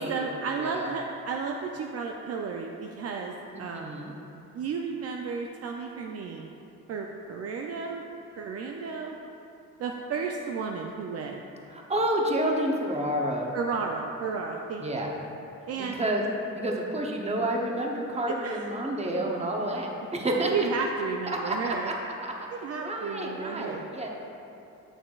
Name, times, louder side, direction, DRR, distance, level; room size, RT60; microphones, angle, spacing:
voice 1, 0.0-3.9 4.5-6.5 6.9-8.0 8.4-9.2 9.8-11.4 13.5-14.8 15.7-16.0 18.4-18.6 20.4-21.9 22.5-23.8, right 5 dB, 55° right, 2 dB, 0.4 m, -33 dB
voice 2, 0.6-0.9 3.5-4.1 11.7-13.6 14.8-15.1 15.8-16.2 16.6-20.7 21.4-21.9 22.2-22.3 22.8-24.1, right 1 dB, 20° right, 0 dB, 0.8 m, -29 dB
6.5 x 6.2 x 2.4 m, 2.8 s
cardioid pair, 90°, 30 cm